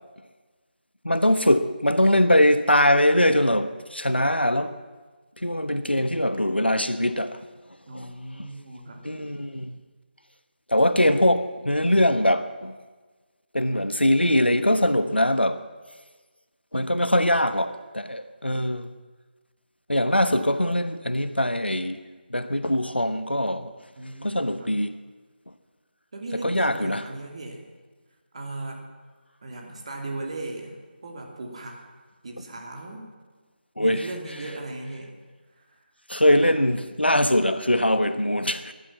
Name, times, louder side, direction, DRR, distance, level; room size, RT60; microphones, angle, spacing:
voice 1, 1.0-4.8 5.4-7.4 7.9-8.1 9.0-9.8 10.7-12.8 13.5-15.7 16.7-18.9 19.9-22.0 22.3-23.7 24.2-24.9 26.4-27.1 33.8-34.1 36.1-38.7, left 1 dB, 90° left, 1.2 m, -22 dB
voice 2, 7.9-9.0 24.0-24.8 26.1-27.7 28.3-28.8 29.4-30.8 31.0-31.8 32.2-33.1 33.8-35.1, right 2 dB, 35° right, 2.7 m, -37 dB
16.0 x 11.5 x 7.3 m
figure-of-eight pair, 160°, 6 cm